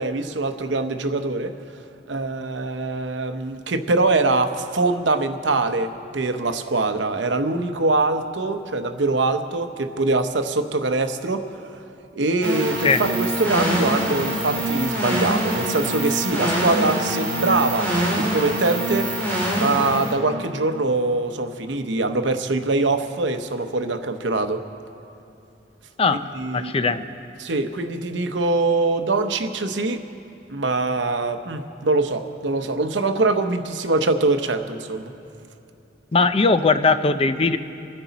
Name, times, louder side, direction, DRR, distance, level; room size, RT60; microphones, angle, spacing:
voice 1, 0.0-1.5 2.1-11.4 11.7-11.8 12.1-19.1 19.5-24.6 26.1-26.9 27.4-30.0 30.5-35.1, right 3 dB, 75° right, 7 dB, 0.8 m, -23 dB
sound 1, 12.4-20.1, right 1 dB, 10° left, 2.9 m, -24 dB
voice 2, 26.5-27.0 36.1-37.6, left 4 dB, 30° left, 11 dB, 0.5 m, -19 dB
27.5 x 9.9 x 4.1 m, 2.7 s
head